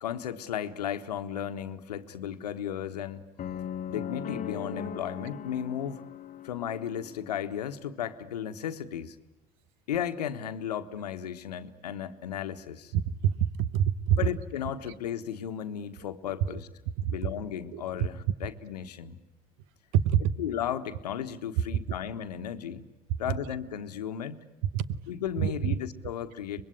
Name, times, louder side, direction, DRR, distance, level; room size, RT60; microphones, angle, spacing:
voice 1, 0.0-3.3 3.9-6.0 6.4-9.1 9.9-12.9 14.2-16.7 17.1-19.2 20.4-22.9 23.2-24.5 25.1-26.6, left 9 dB, 90° left, 1.3 m, -35 dB
sound 1, 3.4-7.5, left 9 dB, 40° left, 1.3 m, -39 dB
voice 2, 12.9-14.2 17.0-17.1 17.7-17.8 19.9-20.2 24.7-24.9 25.4-25.5, right 10 dB, 70° right, 1.0 m, -25 dB
24.5 x 21.5 x 9.9 m
hypercardioid pair, 75°, 20 cm